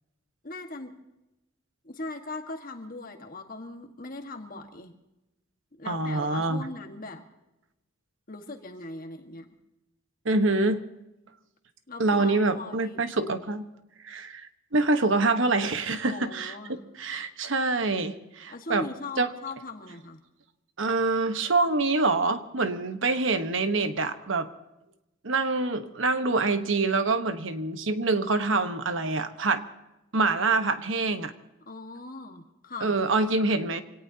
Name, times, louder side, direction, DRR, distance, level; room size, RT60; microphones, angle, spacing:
voice 1, 0.4-1.0 1.8-4.9 5.7-7.3 8.3-9.5 11.9-13.1 16.0-16.8 18.5-20.2 31.7-32.9, left 2 dB, 45° left, 4 dB, 1.6 m, -40 dB
voice 2, 5.9-6.7 10.2-10.8 12.0-13.6 14.0-18.9 19.2-19.3 20.8-24.5 25.2-29.6 30.1-31.3 32.8-33.8, right 3 dB, 65° right, 9 dB, 1.2 m, -26 dB
25.5 x 18.0 x 2.9 m, 0.93 s
head